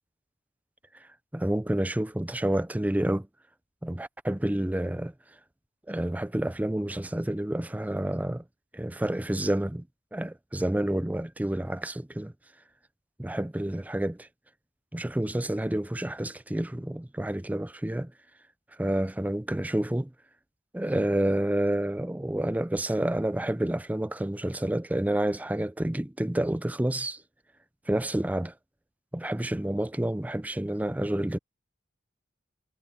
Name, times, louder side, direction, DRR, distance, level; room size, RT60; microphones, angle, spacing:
voice 1, 1.3-3.3 3.8-5.1 5.9-8.4 8.7-9.9 10.1-12.3 13.2-14.3 14.9-18.1 18.8-20.1 20.7-27.2 27.9-28.5 29.1-31.4, right 1 dB, 10° right, 0.4 m, -29 dB
head